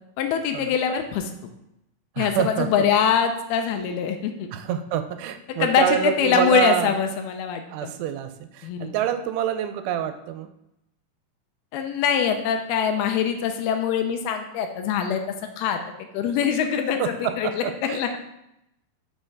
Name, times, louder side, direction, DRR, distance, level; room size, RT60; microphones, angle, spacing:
voice 1, 0.2-1.3 2.2-4.5 5.6-7.9 8.6-8.9 11.7-15.2 15.6-18.1, left 7 dB, 80° left, 6 dB, 2.4 m, -23 dB
voice 2, 2.2-2.9 4.5-7.0 7.7-10.5 17.0-18.0, right 10 dB, 85° right, 9 dB, 2.6 m, -26 dB
6.3 x 4.4 x 4.6 m, 0.83 s
omnidirectional pair, 4.7 m